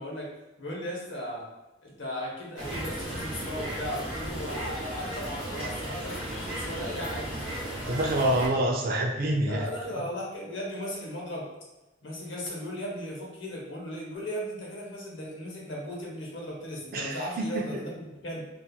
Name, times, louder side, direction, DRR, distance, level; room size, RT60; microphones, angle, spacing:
voice 1, 0.0-1.5 1.8-7.4 9.4-11.5 12.0-18.5, equal, 70° left, -3 dB, 0.8 m, -36 dB
sound 1, 2.6-8.5, right 1 dB, 5° right, 1.2 m, -35 dB
voice 2, 7.9-9.7 16.9-17.8, right 1 dB, 50° right, 1 dB, 0.4 m, -27 dB
2.8 x 2.4 x 2.3 m, 1.0 s
head